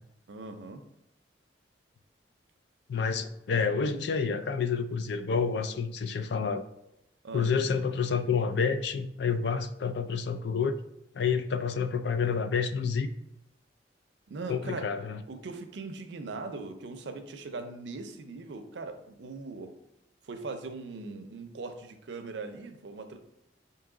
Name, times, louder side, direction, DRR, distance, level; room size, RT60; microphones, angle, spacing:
voice 1, 0.3-0.8 7.2-7.5 14.3-14.9 15.3-19.7 20.2-23.2, right 3 dB, 75° right, 7 dB, 0.5 m, -40 dB
voice 2, 2.9-6.6 7.3-10.8 11.1-13.1 14.5-15.2, left 5 dB, 65° left, 10 dB, 0.4 m, -29 dB
4.6 x 2.7 x 3.7 m, 0.82 s
head